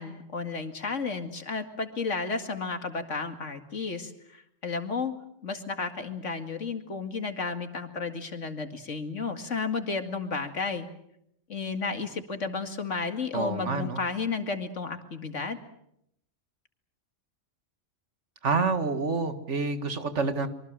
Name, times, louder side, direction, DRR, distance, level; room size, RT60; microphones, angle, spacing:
voice 1, 0.0-5.1 5.4-10.9 11.5-15.6, left 4 dB, 85° left, 7 dB, 2.5 m, -32 dB
voice 2, 13.3-14.0 18.4-20.5, right 4 dB, 75° right, 9 dB, 2.1 m, -28 dB
25.5 x 23.5 x 7.5 m, 0.74 s
omnidirectional pair, 1.2 m